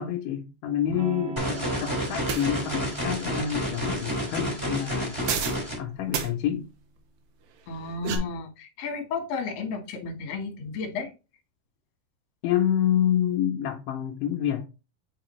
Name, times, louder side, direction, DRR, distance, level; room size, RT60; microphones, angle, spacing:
voice 1, 0.0-5.2 5.8-6.7 12.4-14.6, left 10 dB, 85° left, 1.9 m, -27 dB
Electric guitar / Strum, 0.9-6.6, right 4 dB, 55° right, 2.6 m, -42 dB
sound 1, 1.4-5.7, equal, 10° right, 1.7 m, -30 dB
sound 2, 2.3-2.5 5.3-5.6 6.1-6.3 7.7-8.2, right 7 dB, 85° right, 3.1 m, -29 dB
voice 2, 7.7-11.1, left 5 dB, 60° left, 2.0 m, -33 dB
6.7 x 4.9 x 3.0 m
omnidirectional pair, 4.7 m